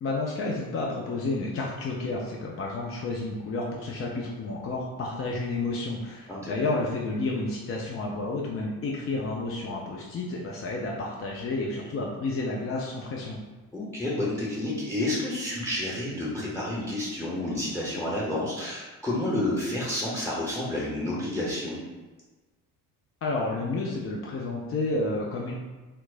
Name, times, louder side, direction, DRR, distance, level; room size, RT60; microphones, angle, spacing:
voice 1, 0.0-13.4 23.2-25.6, left 2 dB, 30° left, -2 dB, 0.5 m, -31 dB
voice 2, 13.7-21.8, left 1 dB, 5° left, -6 dB, 0.8 m, -30 dB
4.2 x 2.0 x 2.5 m, 1.2 s
figure-of-eight pair, 50°, 47 cm